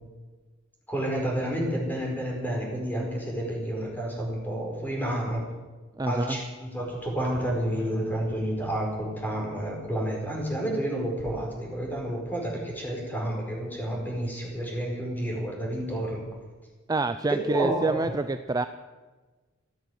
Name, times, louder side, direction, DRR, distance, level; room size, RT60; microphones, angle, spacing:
voice 1, 0.9-5.4 6.1-16.2 17.5-18.1, right 1 dB, 10° left, -1 dB, 4.7 m, -30 dB
voice 2, 6.0-6.4 16.9-18.7, right 3 dB, 20° right, 10 dB, 0.4 m, -27 dB
14.5 x 10.0 x 9.3 m, 1.3 s
head